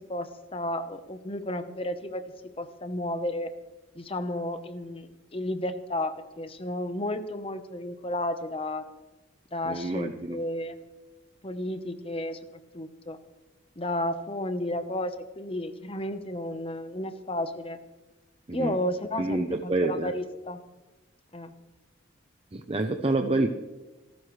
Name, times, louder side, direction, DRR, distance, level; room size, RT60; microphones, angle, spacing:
voice 1, 0.1-2.2 2.6-3.5 3.9-8.8 9.5-10.8 11.4-12.4 12.7-13.2 13.8-17.8 18.5-20.6 21.3-21.5, left 1 dB, 30° left, 9 dB, 1.0 m, -32 dB
voice 2, 9.6-10.4 18.5-18.8 19.2-20.1 22.5-23.5, right 2 dB, 30° right, 6 dB, 0.7 m, -27 dB
27.5 x 12.5 x 3.3 m, 1.1 s
head